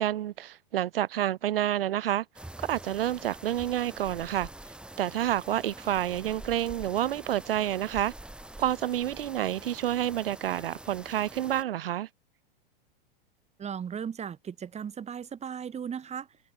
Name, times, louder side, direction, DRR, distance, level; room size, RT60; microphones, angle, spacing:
voice 1, 0.0-2.2 2.6-4.5 5.0-8.1 8.6-12.1, right 12 dB, 75° right, 1.2 m, -29 dB
sound 1, 2.3-11.6, right 1 dB, 5° right, 1.5 m, -45 dB
voice 2, 13.6-16.3, right 7 dB, 20° right, 4.3 m, -36 dB
hypercardioid pair, 105°, 29 cm